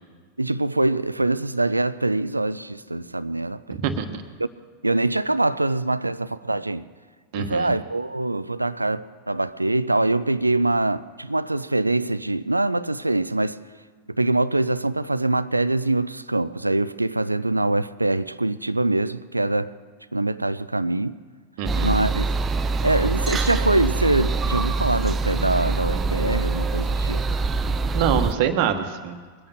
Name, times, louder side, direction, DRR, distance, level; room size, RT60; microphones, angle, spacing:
voice 1, 0.4-3.8 4.4-4.5 4.8-6.9 7.3-13.6 14.2-19.7 20.1-21.1 21.8-22.3 22.8-27.2, right 2 dB, 85° right, 0.4 m, -24 dB
voice 2, 3.7-4.2 7.3-7.7 21.6-22.0 27.9-29.2, right 8 dB, 45° right, 1.3 m, -25 dB
sound 1, 21.7-28.3, right 3 dB, 20° right, 0.7 m, -24 dB
21.5 x 8.9 x 6.6 m
figure-of-eight pair, 90°, 0 cm